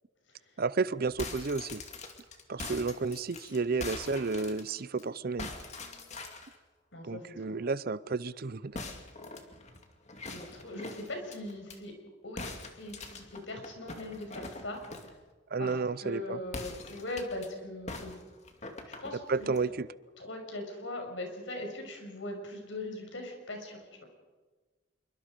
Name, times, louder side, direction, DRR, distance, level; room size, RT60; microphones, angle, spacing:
voice 1, 0.6-1.8 2.5-5.5 7.0-8.8 15.5-16.4 19.3-19.9, right 4 dB, 50° right, 18 dB, 0.6 m, -32 dB
sound 1, 1.1-5.0 5.4-6.6 8.7-11.8 12.4-15.2 16.5-17.5 17.9-19.7, left 3 dB, 35° left, 2.4 m, -43 dB
voice 2, 6.9-7.6 10.3-11.9 12.2-12.4 12.7-14.8 15.6-18.2 18.9-19.5 20.2-24.0, left 1 dB, 75° left, 3 dB, 6.2 m, -40 dB
27.0 x 23.5 x 5.2 m, 1.3 s
head